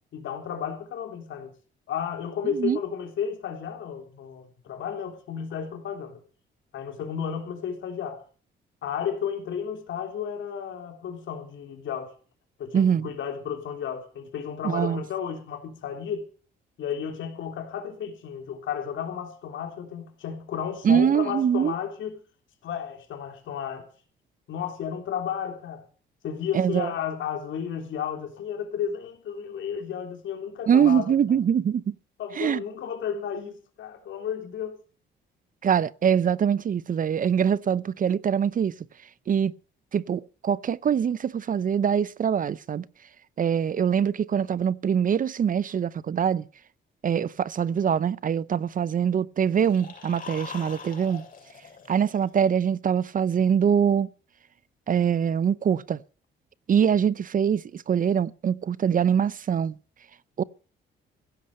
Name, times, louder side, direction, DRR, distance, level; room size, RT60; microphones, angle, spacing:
voice 1, 0.1-1.5 1.9-6.2 6.7-8.2 8.8-12.1 12.6-16.2 16.8-22.2 22.6-23.9 24.5-25.8 26.2-31.1 32.2-34.8, left 8 dB, 75° left, 3.5 m, -33 dB
voice 2, 2.4-2.8 12.7-13.1 14.6-15.0 20.8-21.7 26.5-26.9 30.7-31.9 32.4-32.6 35.6-38.7 39.3-39.5 39.9-42.8 43.4-46.5 47.0-51.2 51.9-54.1 54.9-56.0 56.7-59.8 60.4-60.5, right 8 dB, 45° right, 0.6 m, -23 dB
sound 1, 49.4-52.6, left 5 dB, 45° left, 6.7 m, -43 dB
16.0 x 8.5 x 6.6 m
cardioid pair, 90°, 20 cm